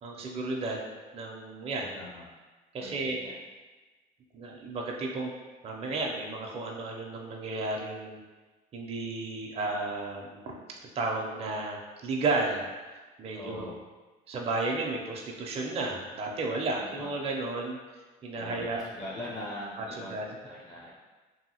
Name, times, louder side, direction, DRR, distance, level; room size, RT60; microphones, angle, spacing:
voice 1, 0.0-2.0 2.7-3.2 4.3-5.3 5.6-8.2 8.7-10.4 10.9-12.7 13.2-13.7 14.3-17.8 18.2-18.9 19.8-20.3, right 2 dB, 35° right, -1 dB, 0.4 m, -33 dB
voice 2, 1.7-2.3 2.8-3.3 13.3-13.8 16.8-17.1 18.4-20.1 20.4-20.9, left 1 dB, 20° left, -6 dB, 0.4 m, -42 dB
2.7 x 2.7 x 2.8 m, 1.3 s
cardioid pair, 110°, 17 cm